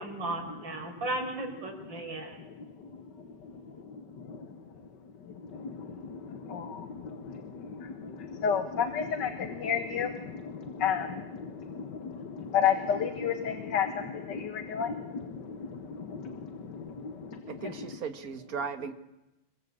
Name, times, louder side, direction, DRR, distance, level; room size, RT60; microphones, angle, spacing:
voice 1, 0.0-2.4, right 2 dB, 85° right, 3 dB, 5.7 m, -35 dB
voice 2, 2.4-4.8 5.2-17.7, left 7 dB, 70° left, 8 dB, 2.1 m, -33 dB
voice 3, 17.5-18.9, right 6 dB, 50° right, 10 dB, 2.0 m, -37 dB
26.0 x 22.5 x 8.6 m, 0.95 s
omnidirectional pair, 2.0 m